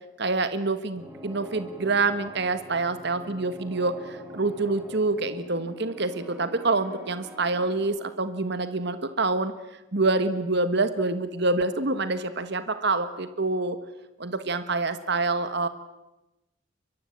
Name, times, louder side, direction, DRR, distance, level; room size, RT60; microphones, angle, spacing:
voice 1, 0.2-9.5 9.9-13.8 14.2-15.7, right 3 dB, 50° right, 11 dB, 1.5 m, -26 dB
sound 1, 0.9-8.3, equal, 10° right, 3.9 m, -45 dB
23.5 x 22.5 x 8.6 m, 0.99 s
head